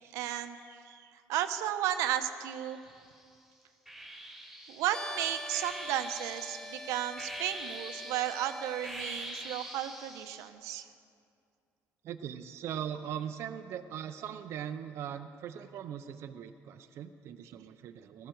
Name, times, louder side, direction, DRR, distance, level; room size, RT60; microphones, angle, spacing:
voice 1, 0.1-2.8 4.7-10.9, right 11 dB, 90° right, 9 dB, 0.8 m, -34 dB
sound 1, 2.5-3.2 3.9-10.5, right 1 dB, ahead, 3.0 m, -45 dB
sound 2, 4.9-9.0, left 1 dB, 15° left, 1.0 m, -44 dB
voice 2, 12.0-18.3, right 9 dB, 55° right, 7 dB, 0.5 m, -40 dB
18.5 x 14.0 x 4.6 m, 2.4 s
cardioid pair, 140°, 5 cm